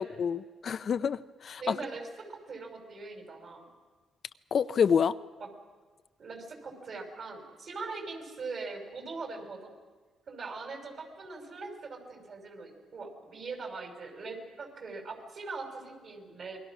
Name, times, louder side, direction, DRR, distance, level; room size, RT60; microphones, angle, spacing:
voice 1, 0.0-1.8 4.5-5.2, left 7 dB, 55° left, 12 dB, 0.6 m, -28 dB
voice 2, 1.6-2.0 2.3-3.7 5.4-5.5 6.2-9.7 10.3-16.6, right 4 dB, 55° right, 3 dB, 5.6 m, -41 dB
28.5 x 22.0 x 6.2 m, 1.4 s
cardioid pair, 90°, 0 cm